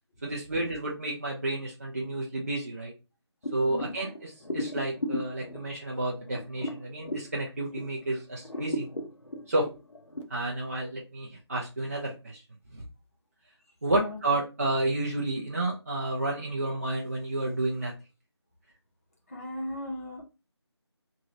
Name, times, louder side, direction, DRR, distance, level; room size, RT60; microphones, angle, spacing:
voice 1, 0.2-2.9 3.5-8.9 9.5-9.7 10.3-12.4 12.7-12.8 13.8-17.9, right 2 dB, 35° right, -3 dB, 0.5 m, -31 dB
sound 1, 3.4-8.0 8.4-10.2, left 1 dB, 80° left, 0.8 m, -36 dB
voice 2, 3.6-3.9 13.9-14.2 19.3-20.2, left 1 dB, 30° left, -1 dB, 0.8 m, -37 dB
2.9 x 2.8 x 2.5 m, 0.29 s
figure-of-eight pair, 165°, 15 cm